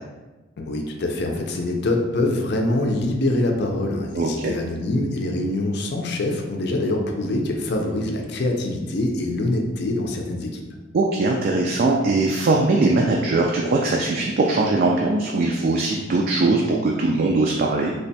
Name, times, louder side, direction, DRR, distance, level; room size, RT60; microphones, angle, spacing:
voice 1, 0.6-10.6, left 1 dB, 60° left, 2 dB, 0.5 m, -24 dB
voice 2, 4.1-4.5 10.9-17.9, right 2 dB, 50° right, 0 dB, 0.3 m, -20 dB
3.2 x 2.2 x 4.0 m, 1.2 s
head